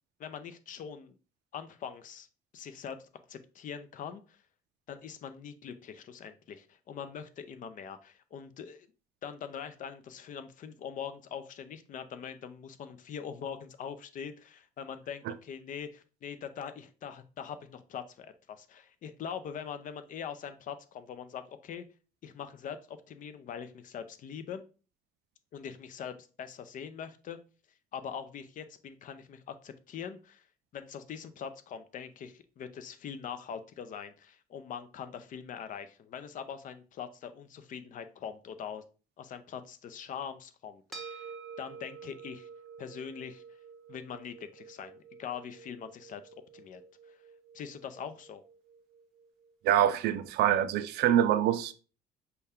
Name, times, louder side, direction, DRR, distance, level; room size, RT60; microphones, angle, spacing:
voice 1, 0.2-1.1 1.5-2.3 2.5-3.0 3.3-4.4 4.9-8.9 9.2-21.8 22.2-24.6 25.5-27.4 27.9-30.4 30.7-38.8 39.2-41.3 41.6-42.5 42.8-43.4 43.9-46.2 46.5-46.8 47.1-47.2 47.5-48.4, left 7 dB, 50° left, 0.5 m, -42 dB
sound 1, 40.9-49.5, right 5 dB, ahead, 1.1 m, -50 dB
voice 2, 49.6-51.7, right 11 dB, 75° right, 0.4 m, -25 dB
5.4 x 2.3 x 3.5 m
cardioid pair, 110°, 17 cm